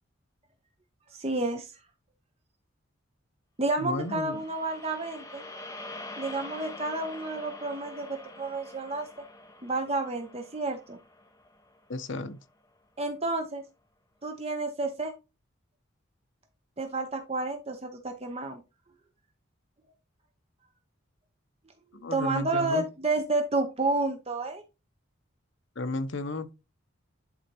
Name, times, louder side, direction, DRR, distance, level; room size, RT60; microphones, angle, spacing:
voice 1, 1.1-1.7 3.6-5.4 6.2-9.1 9.6-11.0 13.0-13.6 14.2-15.1 16.8-18.6 22.1-24.6, right 2 dB, 30° right, 0.8 m, -30 dB
voice 2, 3.8-4.4 11.9-12.4 22.0-22.9 25.8-26.5, left 2 dB, 65° left, 0.8 m, -33 dB
sound 1, 3.9-12.3, left 2 dB, 15° left, 1.1 m, -45 dB
11.0 x 4.1 x 2.9 m
head